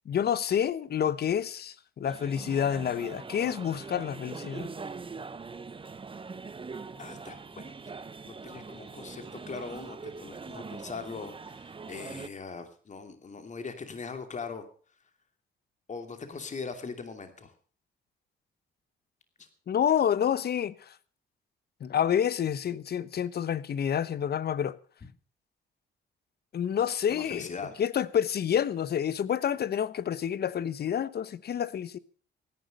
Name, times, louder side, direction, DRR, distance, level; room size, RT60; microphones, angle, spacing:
voice 1, 0.1-4.7 19.7-20.9 21.8-24.8 26.5-27.5 27.8-32.0, left 9 dB, 55° left, 1.0 m, -28 dB
sound 1, 2.0-12.3, right 4 dB, 25° right, 1.0 m, -42 dB
voice 2, 7.0-7.7 8.2-14.7 15.9-17.5 19.4-19.5 27.1-27.8, left 4 dB, 35° left, 2.7 m, -41 dB
16.5 x 10.5 x 6.5 m
cardioid pair, 90°, 20 cm